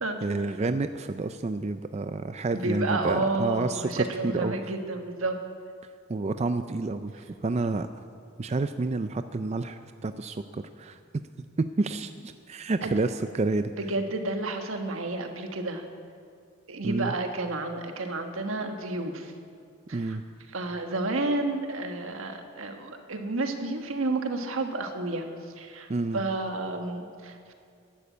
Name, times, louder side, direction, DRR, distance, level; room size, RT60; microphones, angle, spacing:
voice 1, 0.2-4.5 6.1-7.9 8.4-11.0 11.6-13.7 16.8-17.1 19.9-20.2 25.9-26.2, right 3 dB, 30° right, 10 dB, 0.4 m, -29 dB
voice 2, 2.5-5.4 12.8-12.9 13.8-15.8 16.7-19.3 19.9-20.2 20.5-25.3 25.6-27.5, right 2 dB, 80° right, 5 dB, 1.5 m, -31 dB
12.0 x 11.5 x 8.4 m, 2.3 s
head